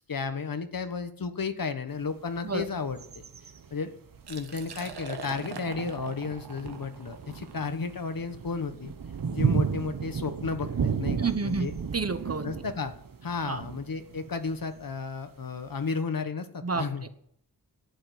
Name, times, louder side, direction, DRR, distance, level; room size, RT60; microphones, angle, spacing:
voice 1, 0.1-3.2 3.7-3.9 4.3-8.9 9.3-11.7 12.4-12.9 13.2-17.1, left 5 dB, 60° left, 9 dB, 1.4 m, -33 dB
sound 1, 2.0-2.1 2.4-15.1 15.7-15.8, right 6 dB, 60° right, 1.1 m, -34 dB
Liquid, 4.1-9.9, right 5 dB, 80° right, 1.5 m, -44 dB
voice 2, 11.2-12.5 13.4-13.7 16.6-17.1, right 4 dB, 40° right, 10 dB, 1.2 m, -30 dB
11.5 x 8.8 x 8.4 m, 0.67 s
wide cardioid pair, 85°, 39 cm